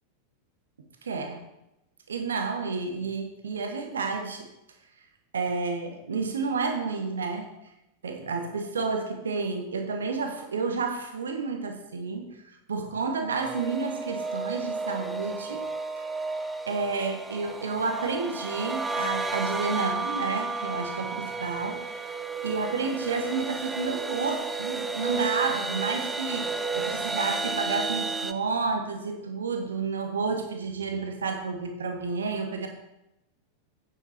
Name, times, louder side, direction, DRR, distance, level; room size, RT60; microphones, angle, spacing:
voice 1, 1.0-1.4 2.1-4.5 5.3-7.5 8.0-15.7 16.7-21.9 22.4-32.7, right 4 dB, 70° right, 5 dB, 1.3 m, -30 dB
sound 1, 13.4-28.3, right 4 dB, 10° right, 0.6 m, -32 dB
8.7 x 7.6 x 4.4 m, 0.89 s
figure-of-eight pair, 90°, 0 cm